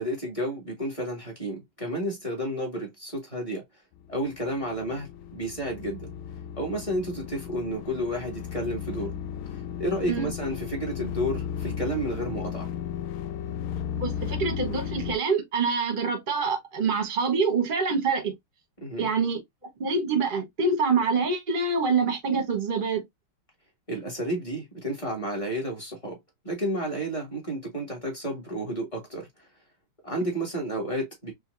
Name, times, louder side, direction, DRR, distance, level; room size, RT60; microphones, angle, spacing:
voice 1, 0.0-3.6 4.1-6.1 6.6-9.2 9.8-12.7 18.8-19.1 23.9-26.2 26.4-29.3 30.0-31.3, right 1 dB, 15° left, 2.0 m, -31 dB
sound 1, 4.0-15.2, left 9 dB, 75° left, 1.3 m, -35 dB
voice 2, 14.0-18.3 19.0-19.4 19.8-23.0, right 4 dB, 30° right, 1.1 m, -26 dB
4.9 x 3.2 x 2.6 m
omnidirectional pair, 2.4 m